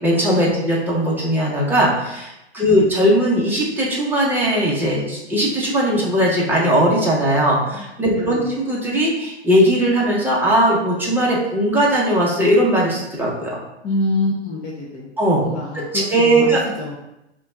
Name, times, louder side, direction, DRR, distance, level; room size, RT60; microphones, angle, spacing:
voice 1, 0.0-13.6 15.2-15.4 15.9-16.6, right 1 dB, 5° right, -5 dB, 0.9 m, -18 dB
voice 2, 7.7-8.5 13.8-17.0, left 2 dB, 20° left, -5 dB, 0.6 m, -27 dB
5.6 x 2.4 x 3.7 m, 0.90 s
hypercardioid pair, 120°, 35 cm